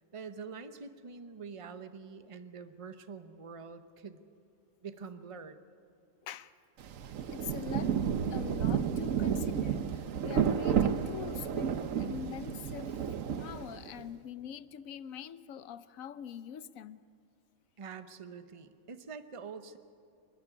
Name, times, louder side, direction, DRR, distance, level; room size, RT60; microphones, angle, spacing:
voice 1, 0.1-4.2 4.8-5.6 17.8-19.8, right 5 dB, 30° right, 10 dB, 0.9 m, -45 dB
Rain, 6.8-14.0, right 8 dB, 75° right, 1.2 m, -31 dB
voice 2, 7.3-8.0 8.3-13.0 13.4-17.0, left 8 dB, 85° left, 15 dB, 1.2 m, -44 dB
28.5 x 12.0 x 9.8 m, 2.6 s
omnidirectional pair, 1.4 m